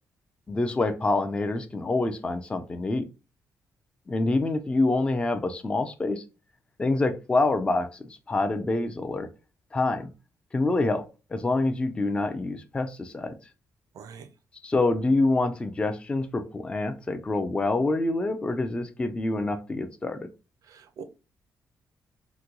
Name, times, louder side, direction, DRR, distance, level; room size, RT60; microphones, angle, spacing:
voice 1, 0.5-3.1 4.1-6.2 6.8-9.3 9.7-10.1 10.5-11.0 11.3-13.3 14.6-20.3, left 2 dB, 15° left, 0.3 m, -26 dB
voice 2, 13.9-14.3 20.6-21.0, right 6 dB, 65° right, 0.4 m, -43 dB
2.9 x 2.2 x 3.6 m
cardioid pair, 150°, 7 cm